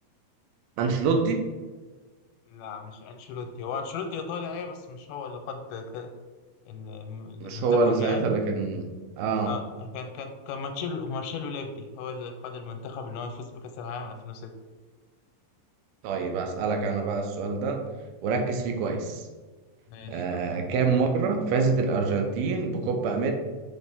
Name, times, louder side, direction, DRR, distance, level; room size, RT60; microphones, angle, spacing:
voice 1, 0.8-1.4 7.4-8.9 9.2-9.5 16.0-17.8 18.2-19.3 20.1-23.3, right 4 dB, 85° right, 4 dB, 2.6 m, -26 dB
voice 2, 2.5-6.1 6.7-8.4 9.4-14.5 18.8-19.0 19.9-20.6, left 5 dB, 90° left, 5 dB, 2.6 m, -36 dB
6.3 x 4.4 x 3.6 m, 1.4 s
omnidirectional pair, 4.4 m